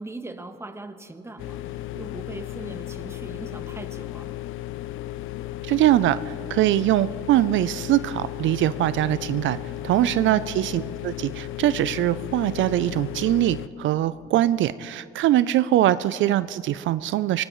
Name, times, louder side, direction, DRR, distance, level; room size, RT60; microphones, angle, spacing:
voice 1, 0.0-4.3 10.0-10.2, right 2 dB, 15° right, 7 dB, 1.2 m, -40 dB
sound 1, 1.4-13.7, left 14 dB, 85° left, 0.5 m, -35 dB
voice 2, 5.6-9.6 9.8-17.4, right 13 dB, 75° right, 15 dB, 0.4 m, -22 dB
25.0 x 18.0 x 3.1 m, 2.4 s
cardioid pair, 90°, 20 cm